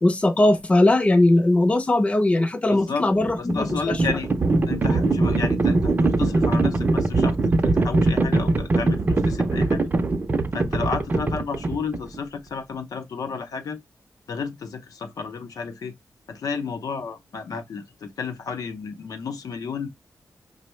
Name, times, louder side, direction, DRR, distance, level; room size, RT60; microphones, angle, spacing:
voice 1, 0.0-4.0, left 2 dB, 20° left, 0.5 m, -19 dB
voice 2, 2.7-3.1 3.4-4.3 4.7-7.4 7.6-9.9 10.5-13.8 14.3-15.9 16.3-19.9, left 5 dB, 80° left, 0.6 m, -32 dB
Livestock farm animals working animals, 3.1-12.2, right 2 dB, 30° right, 0.4 m, -22 dB
5.2 x 2.0 x 3.1 m
wide cardioid pair, 175°, 6 cm